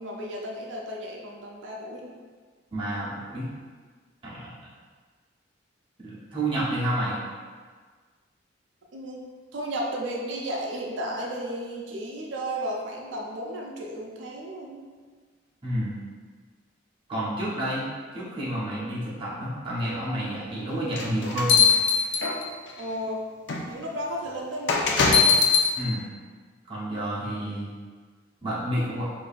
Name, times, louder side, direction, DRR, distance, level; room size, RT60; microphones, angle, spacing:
voice 1, 0.0-2.1 8.9-9.2 9.5-14.9 22.8-23.2 23.7-25.1, equal, 70° right, -2 dB, 0.5 m, -34 dB
voice 2, 2.7-3.5 4.2-4.6 6.0-7.2 15.6-16.0 17.1-17.8 18.1-21.7 25.8-26.1 26.7-27.7 28.4-29.1, right 1 dB, 25° right, -9 dB, 0.9 m, -29 dB
sound 1, 20.9-22.7 23.5-23.6 24.7-25.7, left 5 dB, 60° left, 0.4 m, -20 dB
4.5 x 2.6 x 2.5 m, 1.5 s
head